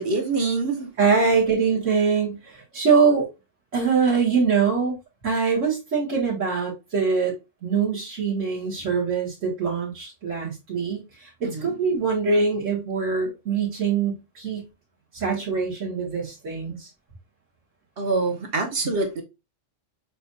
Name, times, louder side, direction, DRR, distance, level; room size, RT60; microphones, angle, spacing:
voice 1, 0.0-0.9 11.4-11.7 18.0-19.2, right 3 dB, 50° right, 1.1 m, -25 dB
voice 2, 1.0-3.3 3.7-5.0 5.2-7.3 7.6-14.7 15.1-16.9, right 5 dB, 70° right, 1.9 m, -23 dB
6.8 x 2.5 x 2.6 m
omnidirectional pair, 1.3 m